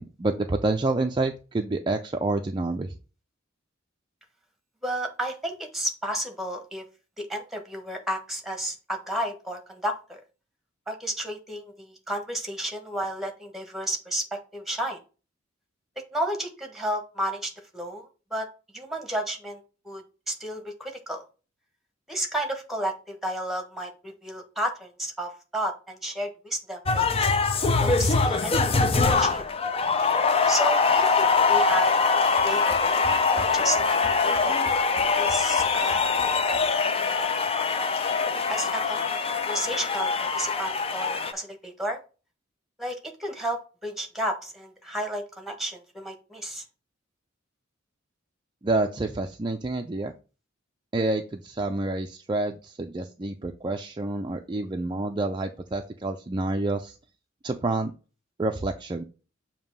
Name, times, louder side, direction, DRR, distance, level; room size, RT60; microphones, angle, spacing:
voice 1, 0.0-2.9 48.6-50.1 50.9-56.9 57.4-57.9 58.4-59.0, right 2 dB, 25° right, 4 dB, 0.4 m, -28 dB
voice 2, 4.8-6.8 7.2-10.2 10.9-15.0 16.1-18.5 18.7-21.2 22.1-27.3 27.8-28.9 29.2-29.4 30.5-33.8 34.1-34.6 35.1-36.1 36.8-37.3 38.5-39.2 39.5-42.0 42.8-46.6, right 1 dB, ahead, 4 dB, 1.2 m, -32 dB
sound 1, 26.9-41.3, left 4 dB, 30° left, 0.5 m, -23 dB
7.1 x 2.9 x 5.4 m, 0.34 s
head